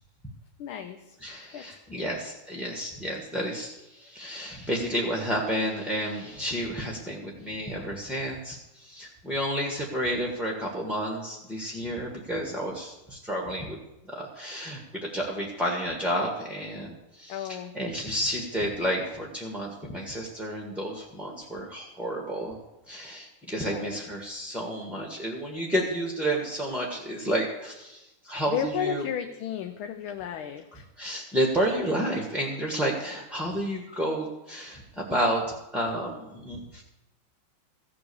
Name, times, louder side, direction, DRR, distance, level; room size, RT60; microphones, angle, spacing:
voice 1, 0.6-1.0 1.5-1.7 1.9-2.1 17.3-17.8 23.7-24.0 28.5-30.8, left 8 dB, 75° left, 7 dB, 1.6 m, -33 dB
voice 2, 1.2-13.8 14.1-22.5 22.9-29.1 31.0-35.4 35.7-36.8, equal, ahead, 0 dB, 1.0 m, -31 dB
15.0 x 7.6 x 6.9 m, 0.96 s
omnidirectional pair, 2.4 m